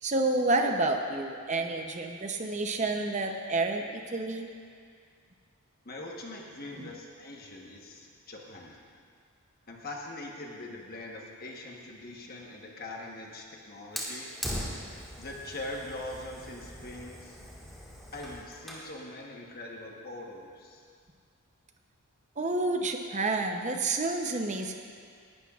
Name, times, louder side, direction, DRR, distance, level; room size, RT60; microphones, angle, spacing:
voice 1, 0.0-4.5 6.7-6.9 22.4-24.7, right 2 dB, 30° right, 4 dB, 0.7 m, -29 dB
voice 2, 5.8-8.8 9.7-14.3 15.2-17.4 18.1-20.8, left 2 dB, 40° left, -1 dB, 1.1 m, -42 dB
Fire, 14.0-18.9, equal, ahead, 1.6 m, -40 dB
19.0 x 11.5 x 2.4 m, 2.2 s
head